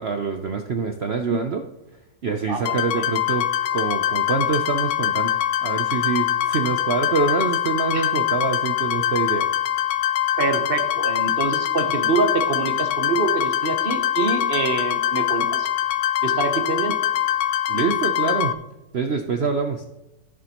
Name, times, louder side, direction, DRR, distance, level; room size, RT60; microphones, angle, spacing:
voice 1, 0.0-1.6 2.2-9.5 17.7-18.5 18.9-19.9, right 5 dB, 65° right, 5 dB, 0.6 m, -25 dB
voice 2, 2.5-3.0 7.9-8.1 10.4-15.7 16.2-17.0, right 4 dB, 40° right, 6 dB, 0.9 m, -25 dB
sound 1, 2.6-18.5, left 11 dB, 70° left, 0.7 m, -23 dB
14.5 x 7.3 x 3.0 m, 0.94 s
omnidirectional pair, 1.9 m